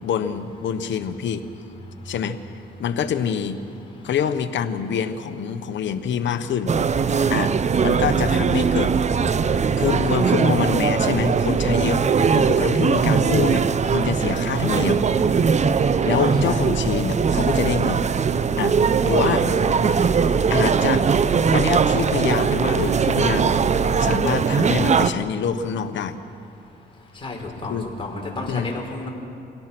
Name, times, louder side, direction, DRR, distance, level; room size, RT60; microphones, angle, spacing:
voice 1, 0.0-1.5 2.0-2.4 2.8-3.6 4.0-6.7 7.3-7.5 7.8-8.9 9.8-12.0 12.3-13.6 13.9-15.0 16.0-18.0 18.6-18.8 19.0-19.5 20.5-21.1 21.5-26.2 27.6-27.9 28.5-28.7, left 7 dB, 70° left, 9 dB, 1.2 m, -25 dB
sound 1, 6.7-25.1, right 6 dB, 35° right, 0.7 m, -20 dB
voice 2, 16.2-16.6 19.1-19.9 27.2-29.1, left 2 dB, 25° left, -1 dB, 5.0 m, -33 dB
26.0 x 17.5 x 6.2 m, 2.5 s
cardioid pair, 90°, 20 cm